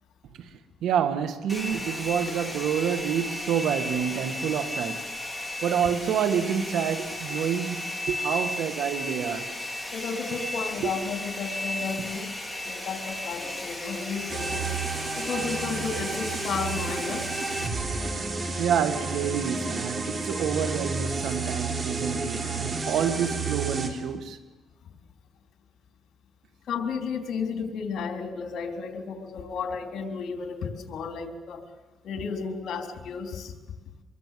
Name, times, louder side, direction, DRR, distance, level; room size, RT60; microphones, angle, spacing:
voice 1, 0.8-5.1 5.6-9.6 10.8-11.0 18.6-24.4, right 8 dB, 80° right, 1.7 m, -28 dB
Domestic sounds home sounds, 1.5-17.7, left 1 dB, ahead, 4.5 m, -35 dB
voice 2, 9.9-12.3 12.6-17.2 26.7-31.6 32.0-33.5, left 5 dB, 70° left, 3.7 m, -33 dB
sound 1, 14.3-23.9, right 4 dB, 40° right, 3.7 m, -31 dB
25.0 x 22.0 x 7.7 m
cardioid pair, 90°, 0 cm